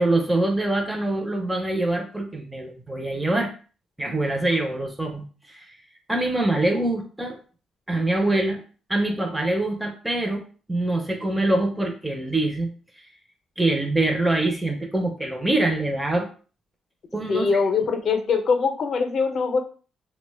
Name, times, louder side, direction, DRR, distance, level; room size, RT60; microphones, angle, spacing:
voice 1, 0.0-3.5 4.0-5.7 6.1-7.4 7.9-8.6 8.9-10.4 10.7-12.7 13.6-16.3 17.1-17.5, right 2 dB, 10° right, 2 dB, 0.5 m, -24 dB
voice 2, 17.3-19.6, left 5 dB, 50° left, 5 dB, 0.5 m, -22 dB
2.9 x 2.1 x 3.2 m, 0.38 s
cardioid pair, 90°, 0 cm